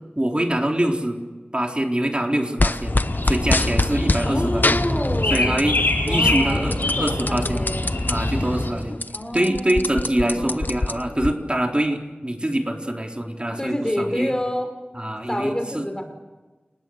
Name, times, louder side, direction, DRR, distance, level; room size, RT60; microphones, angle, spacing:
voice 1, 0.2-1.2 1.5-2.9 3.3-4.8 5.3-5.8 6.1-7.8 8.1-9.0 9.3-14.3 14.9-15.9, right 1 dB, 30° right, 2 dB, 4.1 m, -24 dB
sound 1, 2.6-4.3 4.6-5.8 6.1-8.1 8.6-8.7 8.9-11.3, left 2 dB, 60° left, 1.0 m, -24 dB
sound 2, 2.8-8.7, left 2 dB, 80° left, 6.6 m, -24 dB
voice 2, 4.2-5.4 6.1-8.0 9.1-10.8 13.6-14.7 15.3-16.0, equal, 20° left, 6 dB, 5.2 m, -28 dB
30.0 x 19.5 x 8.1 m, 1.2 s
wide cardioid pair, 45°, 4 cm